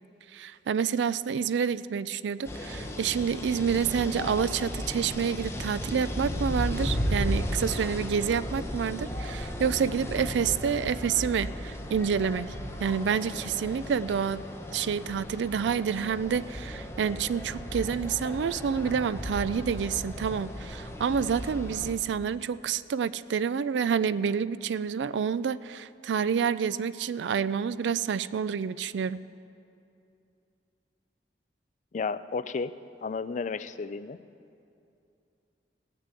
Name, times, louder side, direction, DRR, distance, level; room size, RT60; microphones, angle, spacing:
voice 1, 0.3-12.5 12.8-14.4 14.7-29.2, right 7 dB, 80° right, 17 dB, 0.4 m, -28 dB
sound 1, 2.4-22.0, equal, 15° left, 0.9 m, -35 dB
voice 2, 31.9-32.7 33.0-34.2, left 4 dB, 45° left, 13 dB, 0.4 m, -32 dB
17.0 x 6.7 x 8.3 m, 2.6 s
head